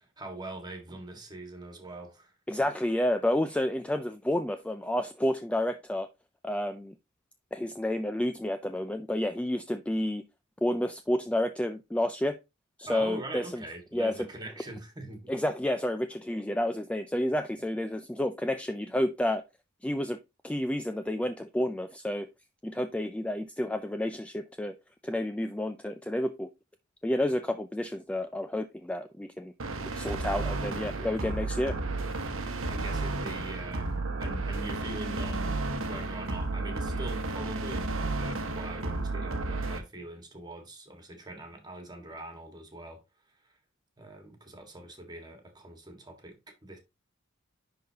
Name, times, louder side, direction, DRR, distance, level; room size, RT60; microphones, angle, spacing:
voice 1, 0.0-2.3 12.9-15.3 32.7-43.0 43.4-43.6 44.0-46.8, right 2 dB, 20° right, 1.6 m, -43 dB
voice 2, 2.5-6.1 6.4-6.9 7.5-10.2 10.6-12.4 12.8-13.6 13.9-14.2 15.3-19.4 19.8-20.2 20.4-22.3 22.6-24.8 25.0-26.5 27.0-29.5 30.0-31.8, left 1 dB, 5° left, 0.3 m, -30 dB
sound 1, 29.6-39.8, right 2 dB, 75° right, 1.0 m, -32 dB
10.5 x 3.9 x 2.8 m
head